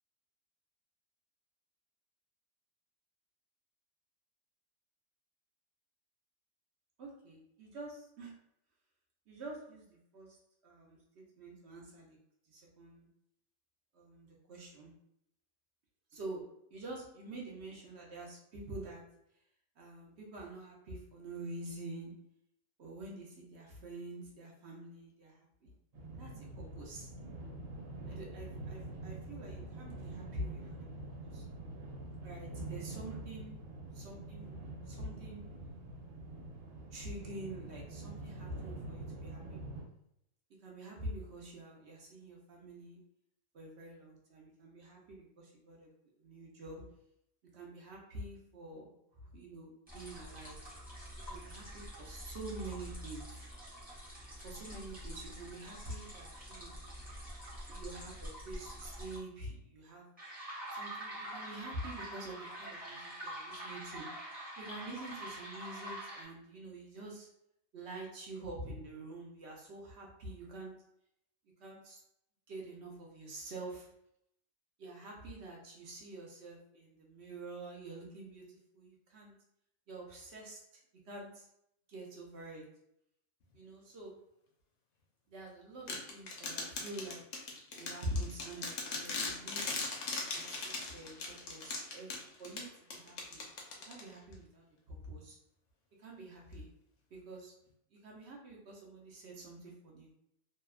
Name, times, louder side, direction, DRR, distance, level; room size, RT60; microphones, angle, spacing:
voice 1, 7.0-8.3 9.3-10.4 10.6-12.2 12.5-13.1 13.9-14.9 16.1-16.4 16.7-19.0 19.8-22.1 22.8-25.7 26.2-27.1 28.1-31.5 32.2-33.6 33.9-35.4 36.9-39.6 40.6-43.0 43.5-45.9 46.2-46.8 47.5-48.9 49.1-50.6 51.3-53.3 54.4-56.7 57.7-60.1 60.7-64.1 64.6-67.3 67.7-70.7 71.6-72.0 72.5-73.8 74.8-79.3 79.9-80.6 81.1-81.5 81.9-82.6 83.5-84.2 85.3-87.2 87.8-89.6 90.3-92.1 92.4-93.4 93.8-95.4 96.0-96.7 97.1-97.5 97.9-100.1, right 1 dB, 60° right, -2 dB, 0.8 m, -47 dB
sound 1, 25.9-39.8, right 2 dB, 85° right, 1.1 m, -45 dB
sound 2, 49.9-59.2 60.2-66.2, right 1 dB, 10° right, 0.7 m, -46 dB
sound 3, 85.9-94.3, left 3 dB, 75° left, 1.0 m, -40 dB
2.7 x 2.1 x 2.3 m, 0.76 s
omnidirectional pair, 1.4 m